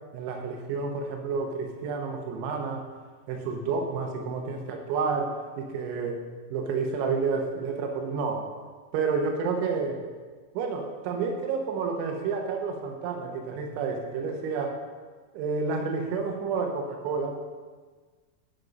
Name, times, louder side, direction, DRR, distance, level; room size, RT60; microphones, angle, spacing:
voice 1, 0.1-2.8 3.3-5.3 5.6-6.3 6.5-8.5 8.9-10.0 10.6-14.8 15.3-17.4, right 5 dB, 75° right, 3 dB, 3.4 m, -30 dB
12.0 x 6.3 x 5.2 m, 1.4 s
omnidirectional pair, 5.6 m